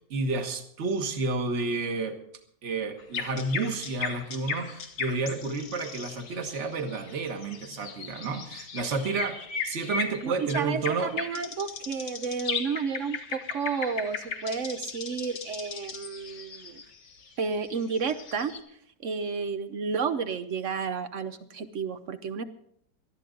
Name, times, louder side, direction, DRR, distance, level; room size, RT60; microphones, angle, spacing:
voice 1, 0.1-2.2 2.6-11.1, right 3 dB, 45° right, 6 dB, 1.6 m, -31 dB
sound 1, 3.0-18.6, left 6 dB, 75° left, 2.0 m, -37 dB
voice 2, 10.2-16.8 17.4-18.5 19.0-22.4, right 5 dB, 60° right, 11 dB, 0.9 m, -31 dB
19.0 x 13.0 x 3.8 m, 0.68 s
omnidirectional pair, 1.9 m